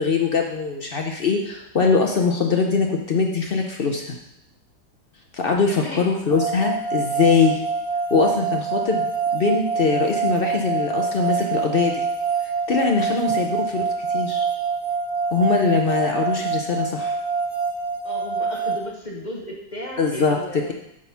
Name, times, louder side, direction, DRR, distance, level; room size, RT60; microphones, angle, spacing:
voice 1, 0.0-4.2 5.3-7.6 8.1-9.1 9.3-12.1 12.7-14.4 15.3-17.1 20.0-20.4, left 5 dB, 65° left, 2 dB, 0.5 m, -22 dB
voice 2, 5.7-6.1 7.4-7.6 13.1-13.3 18.0-20.7, left 1 dB, 35° left, -2 dB, 0.8 m, -35 dB
sound 1, 6.3-18.8, right 5 dB, 40° right, 1.6 m, -25 dB
8.2 x 3.9 x 5.7 m, 0.80 s
omnidirectional pair, 1.9 m